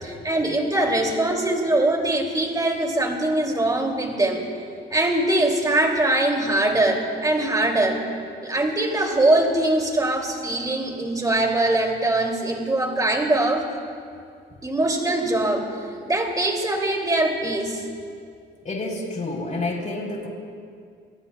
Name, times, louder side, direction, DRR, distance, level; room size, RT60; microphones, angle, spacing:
voice 1, 0.0-4.4 4.9-8.0 8.4-13.6 14.6-15.7 16.0-17.8, right 2 dB, 20° right, 1 dB, 2.7 m, -22 dB
voice 2, 18.6-20.3, left 2 dB, 40° left, 0 dB, 3.8 m, -29 dB
26.0 x 19.0 x 2.3 m, 2.3 s
cardioid pair, 100°, 20 cm